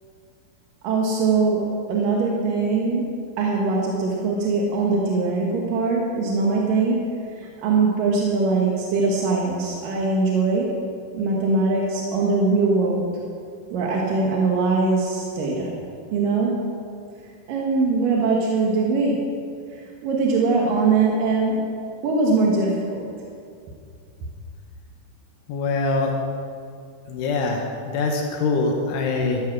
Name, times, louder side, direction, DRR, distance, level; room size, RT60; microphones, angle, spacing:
voice 1, 0.8-1.6 1.9-3.1 3.4-7.0 7.4-10.7 11.1-13.0 13.7-15.7 16.1-16.5 17.5-19.2 19.7-21.6 22.0-23.1, right 3 dB, 60° right, -2 dB, 2.4 m, -21 dB
voice 2, 25.5-26.1 27.1-29.4, left 3 dB, 80° left, 0 dB, 3.6 m, -24 dB
14.0 x 13.0 x 6.1 m, 2.3 s
omnidirectional pair, 5.5 m